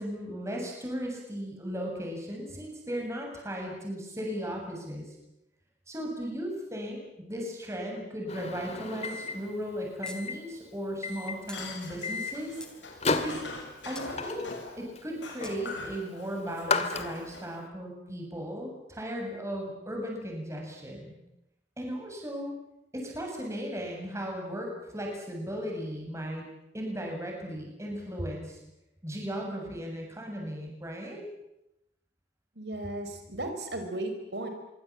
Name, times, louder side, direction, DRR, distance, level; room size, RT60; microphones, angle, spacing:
voice 1, 0.0-5.2 5.9-7.0 7.3-12.6 13.2-13.4 13.8-14.4 14.8-21.1 21.8-22.5 22.9-26.5 26.7-28.6 29.0-31.2, equal, 15° right, 0 dB, 7.6 m, -36 dB
Microwave oven, 8.3-17.5, left 4 dB, 35° left, 2.1 m, -35 dB
sound 1, 10.1-10.2 10.5-10.6 11.5-11.6 12.2-12.8 14.0-14.1 15.4-15.6, left 1 dB, 5° left, 3.2 m, -45 dB
sound 2, 11.3-14.8 15.2-17.5, left 3 dB, 85° left, 7.0 m, -42 dB
voice 2, 32.6-34.5, right 1 dB, 65° right, 6 dB, 4.3 m, -35 dB
25.5 x 24.0 x 8.8 m, 0.89 s
head